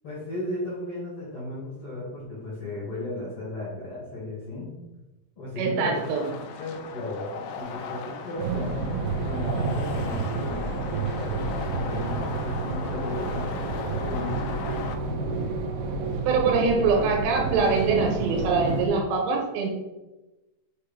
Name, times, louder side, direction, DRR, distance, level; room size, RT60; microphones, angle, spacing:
voice 1, 0.0-4.7 5.3-6.0 6.3-7.3 7.5-14.6 14.9-15.6, left 1 dB, 70° left, -7 dB, 1.3 m, -35 dB
voice 2, 5.6-6.3 16.3-19.7, right 4 dB, 70° right, 1 dB, 3.0 m, -23 dB
sound 1, 5.9-15.0, left 5 dB, 85° left, 2.4 m, -37 dB
sound 2, 8.4-18.9, right 4 dB, 90° right, 2.2 m, -30 dB
7.3 x 2.9 x 5.0 m, 1.1 s
omnidirectional pair, 5.5 m